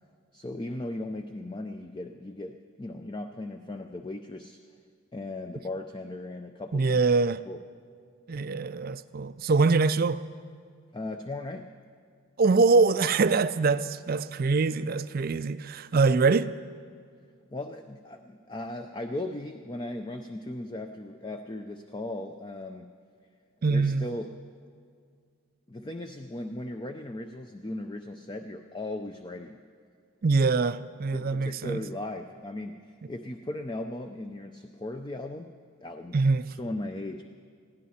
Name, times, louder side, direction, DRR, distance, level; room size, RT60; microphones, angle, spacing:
voice 1, 0.3-4.6 5.1-7.0 7.5-7.6 10.9-11.7 17.5-22.9 23.7-24.3 25.7-29.6 31.1-35.5 35.8-36.2 36.5-37.2, left 1 dB, 20° left, 0.5 m, -37 dB
voice 2, 6.7-7.4 8.3-10.2 12.4-16.5 23.6-24.1 30.2-31.8 36.1-36.4, right 4 dB, 40° right, 0.4 m, -24 dB
20.5 x 16.0 x 4.2 m
head